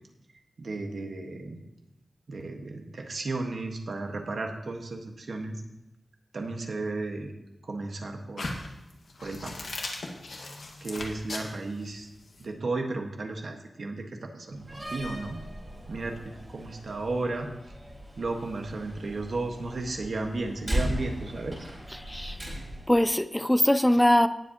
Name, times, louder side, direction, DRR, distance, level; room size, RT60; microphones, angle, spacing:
voice 1, 0.6-1.6 2.3-5.6 6.3-7.3 7.6-8.5 9.2-9.7 10.8-12.1 12.4-15.4 15.9-17.7 18.2-21.7, right 2 dB, 65° right, 3 dB, 1.5 m, -34 dB
sound 1, 8.4-12.4, left 2 dB, 85° left, 1.8 m, -38 dB
Slam, 14.5-23.0, equal, 20° right, 4.6 m, -37 dB
voice 2, 22.0-22.4 22.9-24.3, left 1 dB, 10° left, 13 dB, 0.4 m, -22 dB
18.5 x 7.5 x 3.0 m, 0.95 s
wide cardioid pair, 130°, 0 cm